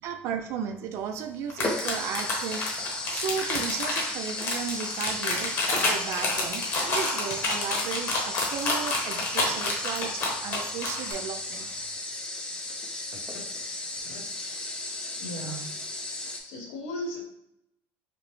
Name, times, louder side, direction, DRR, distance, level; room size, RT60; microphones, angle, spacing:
voice 1, 0.0-2.7 3.1-11.8, right 7 dB, 50° right, 7 dB, 0.3 m, -35 dB
sound 1, 1.0-1.1 1.6-16.4, left 2 dB, 15° left, 0.4 m, -35 dB
sound 2, 1.5-11.1, left 3 dB, 40° left, 0.9 m, -28 dB
voice 2, 15.2-15.8 16.4-17.2, equal, 65° left, 0 dB, 1.0 m, -36 dB
5.0 x 2.0 x 3.0 m, 0.79 s
cardioid pair, 170°, 6 cm